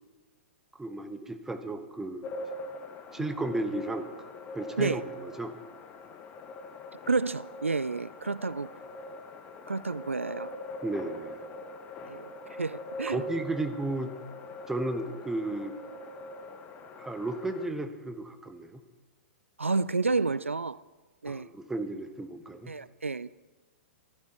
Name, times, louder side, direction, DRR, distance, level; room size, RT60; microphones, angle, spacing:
voice 1, 0.8-2.3 3.1-4.1 4.5-5.5 10.8-11.4 13.1-14.1 14.7-15.7 17.0-18.8 21.3-22.7, right 2 dB, 5° right, 1.1 m, -34 dB
sound 1, 2.2-17.7, left 1 dB, 25° left, 1.2 m, -43 dB
voice 2, 7.1-8.7 9.7-10.5 12.1-13.2 19.6-20.8 21.2-21.5 22.7-23.4, right 4 dB, 80° right, 0.3 m, -30 dB
15.5 x 12.5 x 4.8 m
figure-of-eight pair, 110°, 7 cm